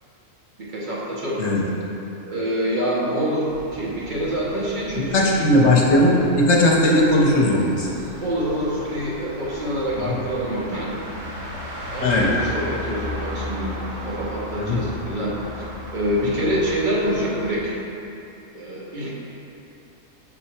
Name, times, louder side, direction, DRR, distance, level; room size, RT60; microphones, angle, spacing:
voice 1, 0.6-1.4 2.3-5.3 8.2-10.9 11.9-13.7 14.0-17.7 18.5-19.1, equal, 45° right, -6 dB, 0.9 m, -26 dB
sound 1, 3.5-17.5, left 1 dB, 85° right, 1.5 m, -36 dB
voice 2, 5.0-7.9 10.0-10.2 12.0-12.3 14.5-14.8, left 1 dB, 65° left, -2 dB, 1.0 m, -18 dB
5.7 x 4.3 x 4.3 m, 2.9 s
omnidirectional pair, 1.3 m